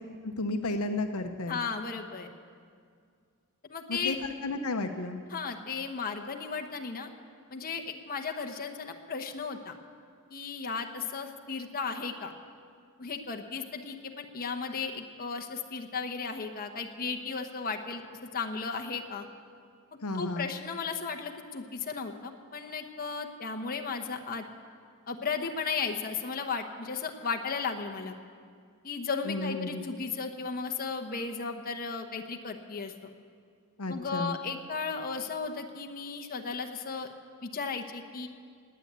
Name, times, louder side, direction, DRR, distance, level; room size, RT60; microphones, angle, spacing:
voice 1, 0.2-1.6 3.9-4.1 4.4-5.2 20.0-20.5 29.3-29.8 33.8-34.4, left 2 dB, 75° left, 7 dB, 0.9 m, -32 dB
voice 2, 1.5-2.3 3.6-4.2 5.3-7.1 7.5-9.7 10.3-12.3 13.0-19.3 20.1-24.5 25.1-28.1 28.8-33.1 33.9-37.1 37.4-38.3, left 5 dB, 40° left, 4 dB, 1.0 m, -35 dB
18.5 x 9.4 x 8.2 m, 2.1 s
head